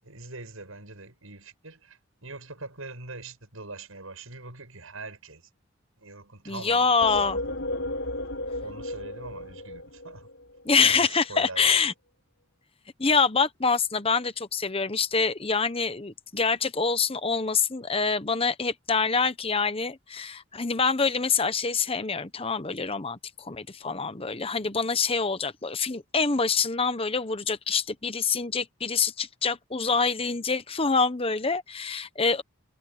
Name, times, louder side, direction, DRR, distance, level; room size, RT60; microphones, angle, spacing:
voice 1, 0.0-5.5 6.0-7.5 8.0-8.2 8.6-10.3 10.8-11.8, right 3 dB, 85° right, 7.0 m, -43 dB
voice 2, 6.5-7.4 10.6-11.9 13.0-32.4, left 5 dB, 25° left, 1.1 m, -26 dB
sound 1, 7.0-10.6, left 1 dB, 60° left, 7.7 m, -34 dB
head